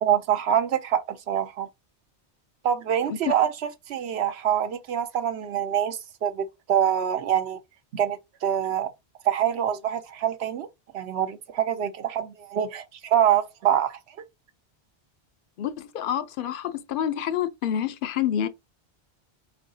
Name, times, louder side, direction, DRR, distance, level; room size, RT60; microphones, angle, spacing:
voice 1, 0.0-1.7 2.6-7.6 7.9-8.9 9.2-10.7 10.9-14.0, right 10 dB, 75° right, 0.9 m, -25 dB
voice 2, 15.6-18.5, left 10 dB, 60° left, 0.7 m, -28 dB
4.6 x 4.2 x 2.7 m
omnidirectional pair, 1.1 m